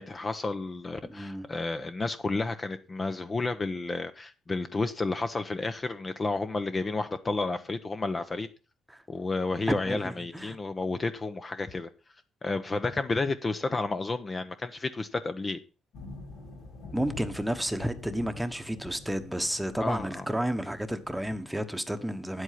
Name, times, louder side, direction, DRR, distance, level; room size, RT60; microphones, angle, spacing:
voice 1, 0.0-8.5 9.1-11.9 12.4-15.6 19.8-20.2, left 3 dB, 25° left, 0.9 m, -31 dB
voice 2, 1.1-1.5 8.9-9.0 9.8-10.6 16.9-22.4, right 1 dB, 5° right, 1.2 m, -32 dB
sound 1, 15.9-21.4, left 2 dB, 80° left, 5.4 m, -45 dB
9.6 x 8.1 x 5.8 m
cardioid pair, 100°, 0 cm